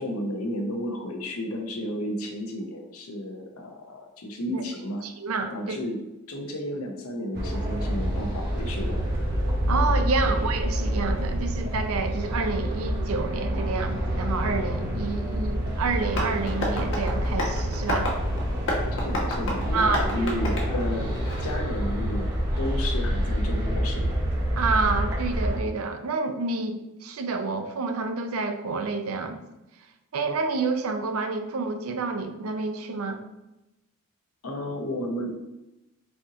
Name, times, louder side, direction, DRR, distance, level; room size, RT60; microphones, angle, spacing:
voice 1, 0.0-5.0 5.5-6.0 6.3-9.0 19.0-21.1 21.4-22.3 22.6-24.2 34.4-35.3, equal, 75° left, 3 dB, 0.7 m, -32 dB
voice 2, 5.0-5.8 9.7-18.1 19.7-20.3 24.5-29.4 30.1-33.2, right 4 dB, 75° right, 7 dB, 0.5 m, -28 dB
sound 1, 7.3-25.6, equal, 50° right, 1.1 m, -27 dB
Tap, 16.1-21.6, left 1 dB, 60° left, 1.2 m, -32 dB
4.2 x 2.9 x 3.7 m, 0.96 s
head